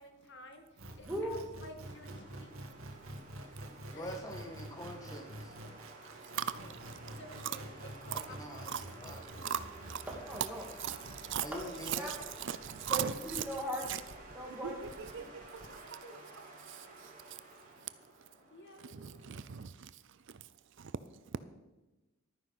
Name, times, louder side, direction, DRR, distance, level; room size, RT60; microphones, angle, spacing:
voice 1, 0.0-3.0 3.3-3.4 3.9-4.7 6.5-6.8 7.2-7.9 8.3-8.7 15.6-16.2 18.5-19.4, left 1 dB, 55° left, 1.8 m, -54 dB
sound 1, 0.8-15.6, right 1 dB, 75° right, 1.9 m, -48 dB
voice 2, 1.1-1.4 5.8-5.9 10.2-10.6 11.5-11.6 12.0-12.1 12.9-13.8 14.3-14.8 15.2-15.3, equal, 5° right, 2.5 m, -38 dB
sound 2, 1.8-19.6, right 2 dB, 40° right, 3.4 m, -53 dB
voice 3, 3.9-5.5 8.1-9.2 11.4-12.1, equal, 15° left, 1.7 m, -45 dB
voice 4, 10.8-11.5 11.8-14.0 14.6-16.0 16.7-16.9 18.9-19.9 20.8-20.9, right 9 dB, 60° right, 0.5 m, -39 dB
13.0 x 9.7 x 5.8 m
head